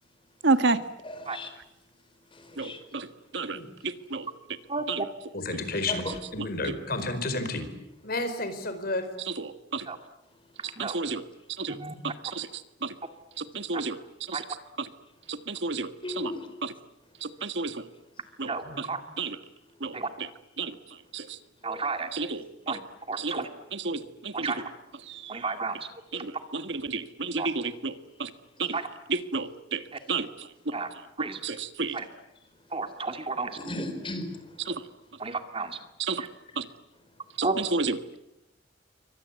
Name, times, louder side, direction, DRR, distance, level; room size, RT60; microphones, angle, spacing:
voice 1, 0.4-0.8 2.6-3.1 3.3-3.6 3.8-4.3 9.7-9.8 10.8-11.2 11.6-11.8 12.3-12.5 12.8-12.9 13.5-14.0 14.3-14.4 15.3-15.9 16.2-16.3 17.4-17.7 18.4-18.5 19.2-19.3 19.8-20.0 20.6-20.7 21.1-21.2 22.1-22.4 23.2-23.3 23.8-24.5 25.1-25.2 26.2-26.3 26.8-27.9 28.2-28.3 28.6-28.7 29.3-29.8 30.1-30.3 31.4-31.9 34.7-34.8 36.1-36.2 36.6-36.7 37.4-37.5 37.7-37.8, right 3 dB, 70° right, 10 dB, 1.6 m, -29 dB
voice 2, 1.0-1.5 2.3-2.8 5.9-6.2 16.0-16.6 31.9-32.0 33.6-34.8 36.5-36.6, left 1 dB, 30° left, 8 dB, 4.8 m, -37 dB
voice 3, 4.7-5.1 9.9-10.0 10.6-11.0 11.7-12.0 13.7-13.8 14.3-14.4 18.4-19.0 19.9-20.1 21.6-22.2 22.7-22.8 23.1-23.5 24.3-24.6 25.3-26.2 27.4-27.5 28.7-28.9 29.9-30.0 30.7-30.9 31.2-31.4 31.9-32.1 32.7-33.6 35.2-35.8 36.2-36.3 37.4-37.7, right 3 dB, 30° right, 7 dB, 2.2 m, -32 dB
voice 4, 5.3-6.0 6.3-7.7 8.0-9.1 18.7-18.8, left 2 dB, 55° left, 10 dB, 4.7 m, -31 dB
29.0 x 24.5 x 8.3 m, 0.87 s
head